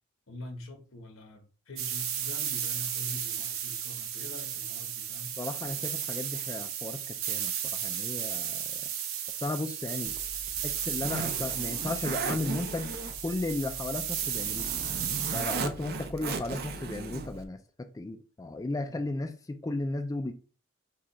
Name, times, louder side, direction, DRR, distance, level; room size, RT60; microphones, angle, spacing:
voice 1, 0.3-5.4 15.3-15.5 18.8-19.0, left 2 dB, 80° left, 1.1 m, -44 dB
sound 1, 1.8-15.6, right 9 dB, 90° right, 0.8 m, -34 dB
voice 2, 5.4-8.9 9.4-10.2 10.6-13.0 13.2-14.7 15.3-20.3, left 2 dB, 15° left, 0.3 m, -35 dB
Zipper (clothing), 10.1-17.4, right 4 dB, 50° right, 0.6 m, -38 dB
5.0 x 2.4 x 4.1 m
head